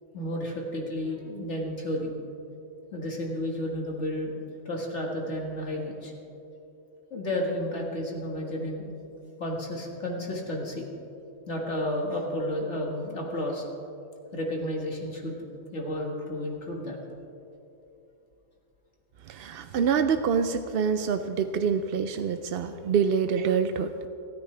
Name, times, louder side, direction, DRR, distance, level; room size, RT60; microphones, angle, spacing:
voice 1, 0.1-2.1 2.9-4.3 4.7-6.1 7.1-8.9 9.4-10.8 11.5-13.6 14.3-15.5 15.7-17.0, left 1 dB, 55° left, 0 dB, 2.1 m, -32 dB
voice 2, 19.3-24.1, right 6 dB, 65° right, 9 dB, 0.6 m, -26 dB
29.0 x 10.5 x 3.3 m, 2.9 s
omnidirectional pair, 1.5 m